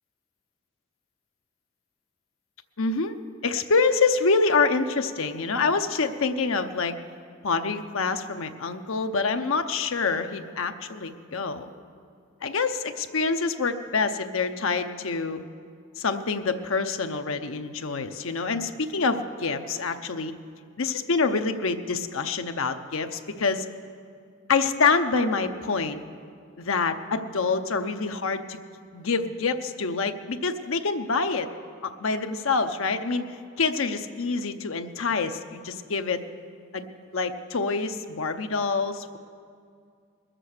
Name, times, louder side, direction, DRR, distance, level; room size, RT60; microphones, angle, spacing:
voice 1, 2.8-3.2 3.4-6.9 7.4-11.7 12.4-15.4 16.0-20.3 20.8-23.7 24.5-26.0 26.6-28.6 28.9-31.5 31.8-33.3 33.6-36.2 36.7-36.8 37.1-39.2, left 4 dB, 65° left, 7 dB, 0.7 m, -26 dB
20.5 x 7.6 x 6.5 m, 2.3 s
head